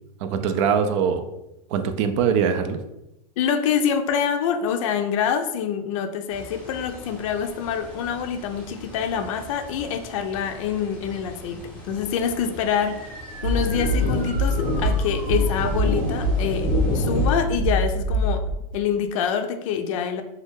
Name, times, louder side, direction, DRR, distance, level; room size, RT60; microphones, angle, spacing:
voice 1, 0.2-1.2 1.7-2.8, right 7 dB, 50° right, 9 dB, 0.4 m, -22 dB
voice 2, 3.4-13.1 13.4-16.7 16.9-18.4 18.7-20.2, left 7 dB, 60° left, 7 dB, 0.4 m, -26 dB
sound 1, 6.3-17.3, left 1 dB, 5° left, 0.7 m, -32 dB
sound 2, 12.7-17.7, right 1 dB, 30° right, 0.8 m, -41 dB
sound 3, 13.4-18.6, equal, 70° right, 0.9 m, -23 dB
2.6 x 2.3 x 3.5 m, 0.88 s
supercardioid pair, 135°, 19 cm